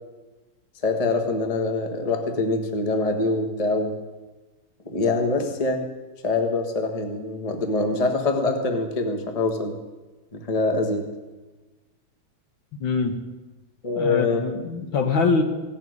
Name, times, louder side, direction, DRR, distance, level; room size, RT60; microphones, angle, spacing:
voice 1, 0.8-3.9 4.8-5.8 6.2-9.7 10.3-11.0 13.8-14.4, left 3 dB, 20° left, 5 dB, 1.2 m, -24 dB
voice 2, 12.8-13.2 14.0-15.4, left 4 dB, 65° left, 6 dB, 1.9 m, -23 dB
16.5 x 7.5 x 9.4 m, 1.2 s
omnidirectional pair, 2.4 m